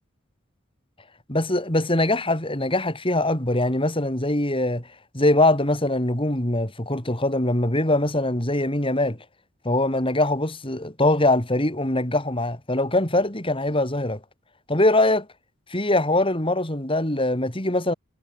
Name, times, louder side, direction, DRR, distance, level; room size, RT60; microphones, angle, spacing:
voice 1, 1.3-4.9 5.1-9.2 9.6-14.2 14.7-15.3 15.7-17.9, left 1 dB, 25° left, 3.5 m, -22 dB
head